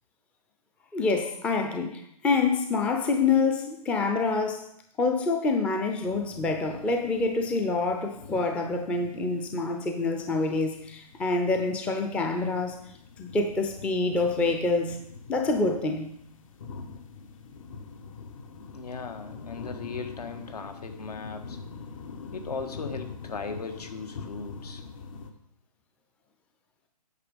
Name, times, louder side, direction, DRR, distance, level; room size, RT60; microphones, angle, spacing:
voice 1, 0.9-4.7 5.0-12.8 13.2-15.0 15.3-16.1, left 3 dB, 5° left, 4 dB, 0.5 m, -26 dB
sound 1, 6.0-25.3, left 5 dB, 55° left, 1.1 m, -44 dB
voice 2, 18.7-21.6 22.3-24.8, left 4 dB, 75° left, 7 dB, 1.5 m, -38 dB
9.1 x 5.9 x 5.1 m, 0.72 s
hypercardioid pair, 145°, 20 cm